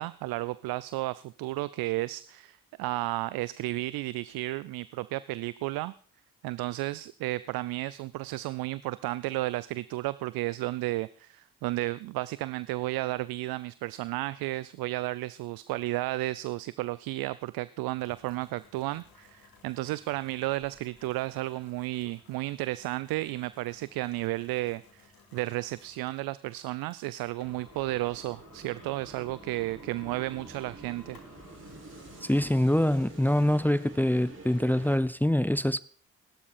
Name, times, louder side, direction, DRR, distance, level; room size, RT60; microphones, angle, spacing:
voice 1, 0.0-5.9 6.4-31.2, right 18 dB, 75° right, 0.6 m, -33 dB
sound 1, 18.0-32.7, left 5 dB, 70° left, 3.7 m, -58 dB
sound 2, 27.4-35.0, right 3 dB, 40° right, 7.3 m, -48 dB
voice 2, 32.2-35.8, left 1 dB, 5° left, 0.7 m, -25 dB
17.5 x 12.5 x 4.4 m
hypercardioid pair, 45°, 36 cm